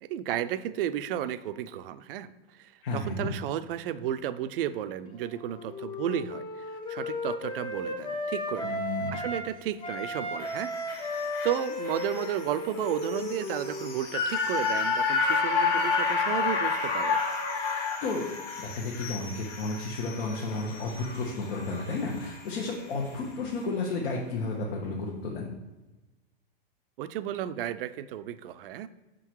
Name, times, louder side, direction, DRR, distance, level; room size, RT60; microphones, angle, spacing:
voice 1, 0.0-2.3 2.5-8.8 9.1-10.7 11.0-17.2 27.0-28.9, right 11 dB, 65° right, 13 dB, 0.5 m, -33 dB
voice 2, 2.8-3.3 8.6-9.2 18.0-18.2 18.6-25.5, left 3 dB, 80° left, -2 dB, 1.1 m, -32 dB
Wind instrument woodwind instrument, 5.1-9.5 9.8-14.3, left 2 dB, 15° left, 0.4 m, -35 dB
sound 1, 10.4-22.7 23.1-23.2, left 5 dB, 30° left, 1.5 m, -31 dB
6.2 x 3.8 x 4.5 m, 1.1 s
supercardioid pair, 145°, 30 cm